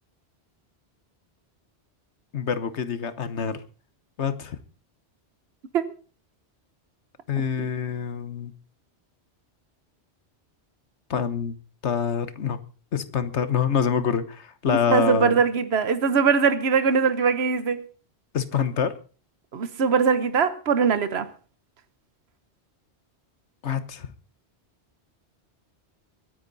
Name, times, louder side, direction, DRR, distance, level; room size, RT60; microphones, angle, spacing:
voice 1, 2.3-3.6 4.2-4.6 7.3-8.5 11.1-11.6 11.8-12.6 12.9-15.4 18.3-19.0 23.6-24.1, left 7 dB, 80° left, 1.4 m, -26 dB
voice 2, 14.7-17.8 19.5-21.3, right 6 dB, 65° right, 1.3 m, -21 dB
23.0 x 10.0 x 4.0 m
omnidirectional pair, 1.2 m